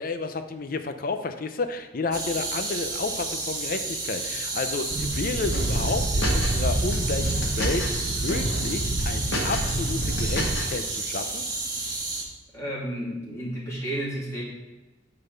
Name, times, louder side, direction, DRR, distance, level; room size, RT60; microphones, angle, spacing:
voice 1, 0.0-11.5, left 3 dB, 50° left, 8 dB, 0.6 m, -31 dB
sound 1, 2.1-12.2, right 3 dB, 25° right, 1.4 m, -31 dB
sound 2, 4.9-10.6, right 1 dB, 75° right, 0.9 m, -28 dB
sound 3, 5.5-6.6 6.9-8.0 8.3-8.7 9.0-10.7, left 1 dB, 85° left, 1.5 m, -32 dB
voice 2, 12.5-14.4, right 1 dB, 15° left, -7 dB, 2.6 m, -32 dB
9.0 x 4.0 x 5.2 m, 1.2 s
head